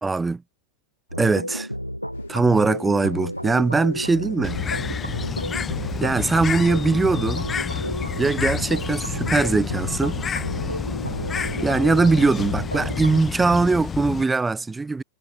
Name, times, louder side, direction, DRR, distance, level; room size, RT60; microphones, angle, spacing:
voice 1, 0.0-0.4 1.2-1.7 2.3-4.6 6.0-7.5 8.2-10.2 11.6-15.0, right 3 dB, 10° right, 0.5 m, -21 dB
sound 1, 1.1-13.2, equal, 90° right, 0.6 m, -31 dB
sound 2, 2.1-7.9, left 9 dB, 65° left, 4.8 m, -50 dB
Bird, 4.4-14.2, left 6 dB, 20° left, 0.9 m, -29 dB
figure-of-eight pair, 90°, 0 cm